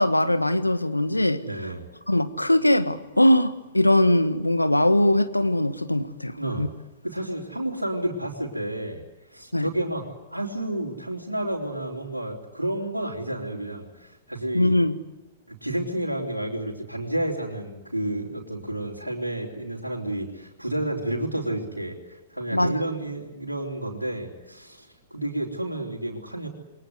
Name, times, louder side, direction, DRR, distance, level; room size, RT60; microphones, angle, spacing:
voice 1, 0.0-1.4 2.1-6.7 9.5-9.7 14.5-15.0 22.5-22.8, left 1 dB, 90° left, 1.6 m, -21 dB
voice 2, 1.4-1.9 6.4-6.7 7.0-14.8 15.5-26.5, right 1 dB, 90° right, 3.8 m, -31 dB
28.5 x 23.5 x 8.2 m
figure-of-eight pair, 105°, 0 cm